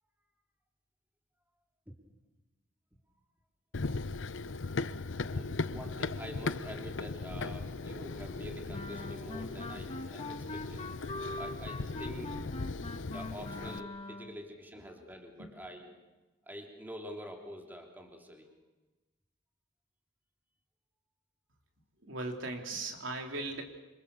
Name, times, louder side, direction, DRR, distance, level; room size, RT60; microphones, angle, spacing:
Run, 3.7-13.8, left 3 dB, 70° left, 0.8 m, -38 dB
voice 1, 5.3-10.9 11.4-12.4 13.1-15.9 16.5-18.5, equal, 10° right, 2 dB, 3.1 m, -46 dB
Wind instrument woodwind instrument, 8.7-14.5, left 2 dB, 35° left, 1.6 m, -43 dB
voice 2, 22.0-23.6, right 2 dB, 80° right, 3 dB, 3.4 m, -38 dB
27.5 x 26.0 x 6.9 m, 1.1 s
head